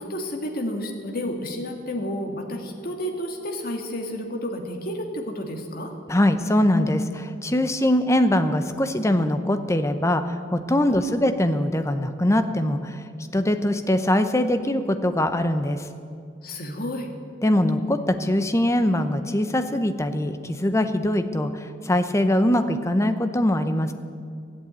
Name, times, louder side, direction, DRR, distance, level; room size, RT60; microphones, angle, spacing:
voice 1, 0.0-5.9 10.9-11.1 16.4-17.1, equal, 50° left, 3 dB, 1.8 m, -31 dB
voice 2, 6.1-15.9 17.4-23.9, left 1 dB, 15° left, 9 dB, 0.7 m, -22 dB
14.5 x 8.3 x 8.9 m, 2.3 s
head